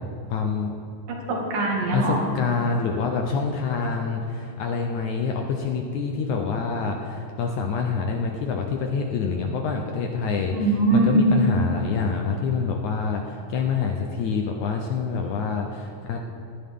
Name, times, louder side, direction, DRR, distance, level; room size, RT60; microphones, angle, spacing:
voice 1, 0.3-0.7 1.9-10.6 10.9-16.2, left 5 dB, 70° left, 2 dB, 1.9 m, -26 dB
voice 2, 1.3-2.2 10.5-11.3, right 2 dB, 70° right, -2 dB, 3.9 m, -21 dB
18.0 x 13.5 x 3.7 m, 2.5 s
omnidirectional pair, 4.1 m